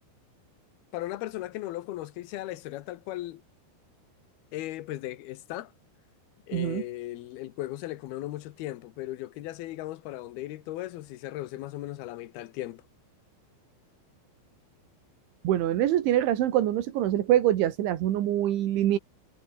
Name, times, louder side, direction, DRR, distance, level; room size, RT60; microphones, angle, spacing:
voice 1, 0.9-3.4 4.5-5.7 6.5-12.8, left 15 dB, 70° left, 2.6 m, -37 dB
voice 2, 6.5-6.8 15.4-19.0, right 12 dB, 80° right, 4.3 m, -24 dB
omnidirectional pair, 5.4 m